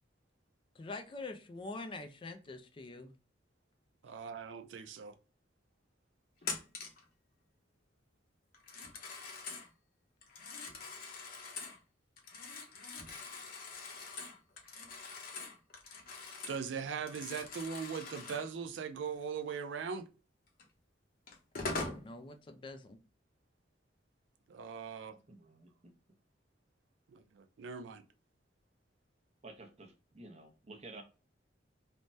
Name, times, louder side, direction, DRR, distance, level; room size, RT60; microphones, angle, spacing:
voice 1, 0.8-3.1 21.7-23.0, left 3 dB, 25° left, 0.3 m, -45 dB
voice 2, 4.0-5.1 16.5-20.1 24.5-25.2 27.1-28.0, right 6 dB, 75° right, 0.4 m, -40 dB
Telephone, 6.4-7.0 8.5-9.7 10.2-11.8 12.2-16.7 16.9-18.5 20.6-20.7 21.3-22.0, left 3 dB, 50° left, 0.7 m, -43 dB
voice 3, 25.3-25.7 29.4-31.0, right 2 dB, 35° right, 0.6 m, -52 dB
3.2 x 2.1 x 2.6 m
head